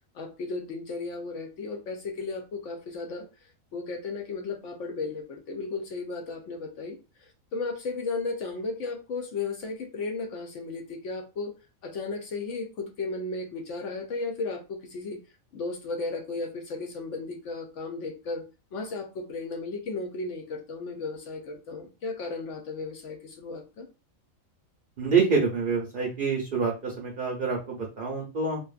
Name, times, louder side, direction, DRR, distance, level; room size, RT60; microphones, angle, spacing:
voice 1, 0.1-11.5 11.8-15.2 15.5-18.4 18.7-23.9, left 3 dB, 70° left, 3 dB, 0.9 m, -35 dB
voice 2, 25.0-28.6, right 5 dB, 55° right, -1 dB, 0.7 m, -26 dB
2.6 x 2.3 x 2.4 m, 0.30 s
omnidirectional pair, 1.4 m